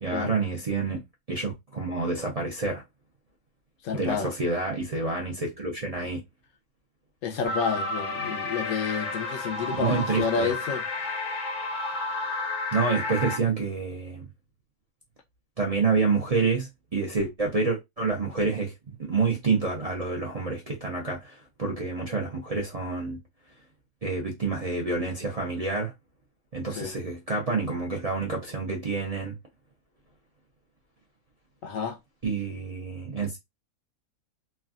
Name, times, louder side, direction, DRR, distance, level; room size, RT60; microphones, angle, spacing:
voice 1, 0.0-1.0 1.3-2.8 3.9-6.2 9.7-10.5 12.7-14.3 15.6-18.7 19.1-23.2 24.0-25.9 26.5-29.3 32.2-33.4, right 4 dB, 50° right, 0.4 m, -28 dB
voice 2, 3.8-4.3 7.2-10.8 26.7-26.9 31.6-32.0, left 6 dB, 70° left, 0.9 m, -30 dB
sound 1, 7.4-13.4, left 3 dB, 50° left, 0.6 m, -31 dB
3.2 x 2.3 x 2.4 m
omnidirectional pair, 1.5 m